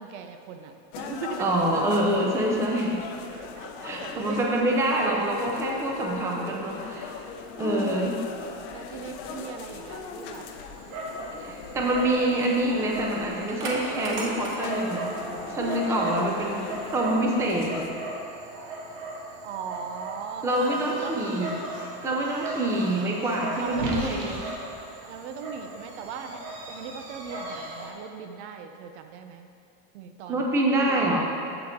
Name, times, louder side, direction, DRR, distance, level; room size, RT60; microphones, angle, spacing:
voice 1, 0.0-1.7 3.3-4.5 5.0-5.3 6.4-6.7 7.7-8.1 8.7-10.5 11.5-11.9 16.0-16.3 19.4-21.2 22.6-22.9 23.6-24.0 25.0-29.5 29.9-31.1, right 6 dB, 85° right, 6 dB, 0.8 m, -39 dB
sound 1, 0.9-17.9, left 6 dB, 50° left, 0.6 m, -39 dB
voice 2, 1.4-3.0 3.8-7.1 7.6-8.2 11.4-15.1 15.5-17.9 20.4-21.5 22.0-24.5 30.3-31.2, right 1 dB, 10° right, -1 dB, 0.5 m, -26 dB
sound 2, 4.8-6.8 7.4-9.1 9.5-9.6 9.9-10.3, left 6 dB, 90° left, 0.9 m, -39 dB
Dog, 10.2-27.9, right 2 dB, 55° right, 1.4 m, -37 dB
8.2 x 8.0 x 3.6 m, 2.5 s
cardioid pair, 175°, 34 cm